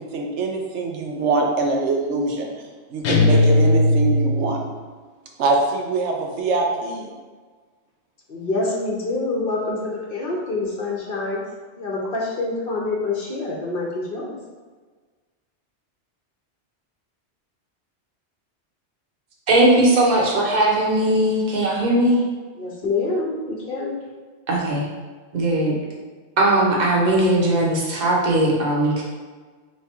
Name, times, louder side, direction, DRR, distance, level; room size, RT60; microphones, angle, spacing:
voice 1, 0.0-2.5 2.9-4.6 5.4-7.1, right 3 dB, 85° right, 1 dB, 1.0 m, -23 dB
sound 1, 3.0-4.8, left 1 dB, 85° left, 1.0 m, -17 dB
voice 2, 8.3-11.4 11.8-14.4 22.6-24.0, left 3 dB, 55° left, -3 dB, 0.9 m, -26 dB
voice 3, 19.5-22.2 24.5-24.8 25.3-25.8 26.4-29.0, right 1 dB, 45° right, -3 dB, 0.9 m, -19 dB
3.4 x 3.2 x 4.3 m, 1.4 s
omnidirectional pair, 1.1 m